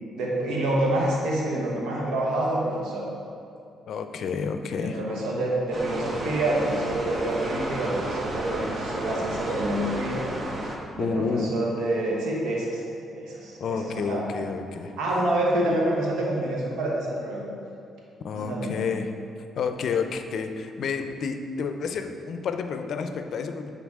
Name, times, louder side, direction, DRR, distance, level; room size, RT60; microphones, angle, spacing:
voice 1, 0.2-3.1 4.8-10.3 10.9-12.8 13.1-14.3 15.0-17.4 18.3-18.8, right 1 dB, 80° right, -3 dB, 1.2 m, -27 dB
voice 2, 3.9-5.0 11.0-11.5 13.6-14.9 18.2-19.1 19.6-23.7, left 5 dB, 65° left, 7 dB, 0.5 m, -30 dB
sound 1, 5.7-10.8, right 1 dB, 35° right, 1.0 m, -32 dB
10.5 x 3.9 x 3.6 m, 2.5 s
cardioid pair, 90°, 0 cm